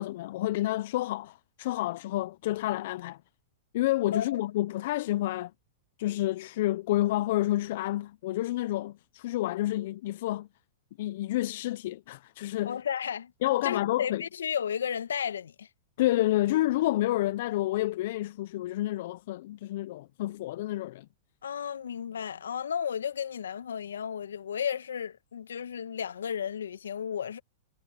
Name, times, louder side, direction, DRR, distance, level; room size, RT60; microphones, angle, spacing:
voice 1, 0.0-3.2 3.7-5.5 6.0-10.5 11.0-12.8 13.4-14.2 16.0-21.1, left 15 dB, 60° left, 0.9 m, -29 dB
voice 2, 12.7-13.3 13.6-15.7 21.4-27.4, left 8 dB, 80° left, 1.8 m, -33 dB
hypercardioid pair, 110°, 0 cm